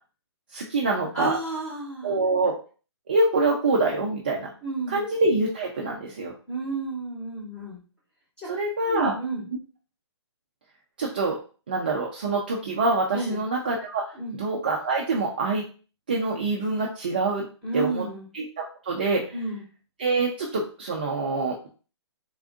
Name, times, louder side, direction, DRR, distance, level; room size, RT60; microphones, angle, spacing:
voice 1, 0.5-1.3 2.0-2.5 3.1-4.5 4.9-6.3 8.5-9.1 11.0-11.4 11.7-15.6 16.1-17.5 17.7-18.1 18.3-18.4 18.8-19.3 20.0-21.7, right 3 dB, 20° right, -2 dB, 0.3 m, -25 dB
voice 2, 1.1-2.2 4.6-5.0 6.5-7.8 8.4-8.5 8.8-9.5 13.1-13.4 14.1-14.4 17.6-18.3 19.3-19.6, right 3 dB, 5° left, -5 dB, 0.8 m, -31 dB
3.5 x 2.4 x 3.5 m, 0.37 s
hypercardioid pair, 170°, 15 cm